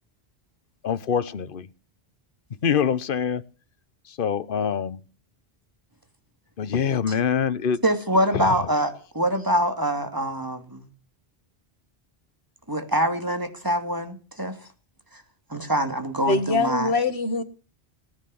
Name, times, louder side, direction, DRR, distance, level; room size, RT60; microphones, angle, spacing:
voice 1, 0.8-1.7 2.6-3.4 4.2-5.0 6.6-7.8 8.3-8.4, left 7 dB, 60° left, 1.1 m, -24 dB
voice 2, 7.8-10.9 12.7-14.5 15.5-16.9, right 1 dB, 20° right, 2.7 m, -25 dB
voice 3, 16.3-17.4, left 3 dB, 85° left, 1.9 m, -23 dB
19.0 x 9.7 x 7.1 m
omnidirectional pair, 1.0 m